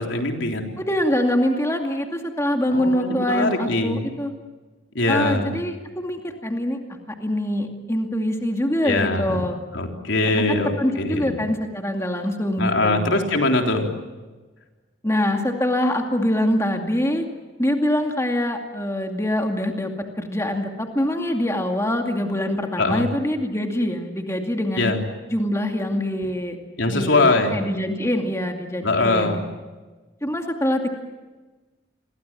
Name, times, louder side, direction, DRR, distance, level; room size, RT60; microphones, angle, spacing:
voice 1, 0.0-0.7 2.7-4.1 4.9-5.6 8.8-9.5 9.7-11.4 12.6-13.9 22.8-23.0 24.8-25.0 26.8-27.6 28.8-29.4, left 2 dB, 75° left, 3 dB, 3.7 m, -22 dB
voice 2, 0.8-4.3 5.1-9.6 10.3-13.2 15.0-17.2 17.6-19.9 20.2-24.9 25.3-26.6 26.9-29.4 30.2-30.9, left 1 dB, 15° left, 3 dB, 2.3 m, -24 dB
29.5 x 22.5 x 7.6 m, 1.2 s
head